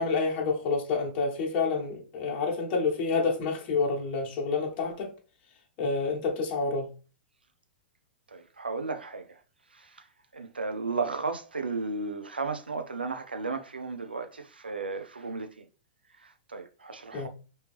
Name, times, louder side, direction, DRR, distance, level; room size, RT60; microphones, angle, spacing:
voice 1, 0.0-5.1 5.8-6.9 17.1-17.3, left 4 dB, 35° left, 1.1 m, -28 dB
voice 2, 8.3-9.4 9.7-10.1 10.3-15.7 16.2-17.3, right 4 dB, 85° right, 0.5 m, -34 dB
3.4 x 2.7 x 3.3 m
figure-of-eight pair, 105°, 5 cm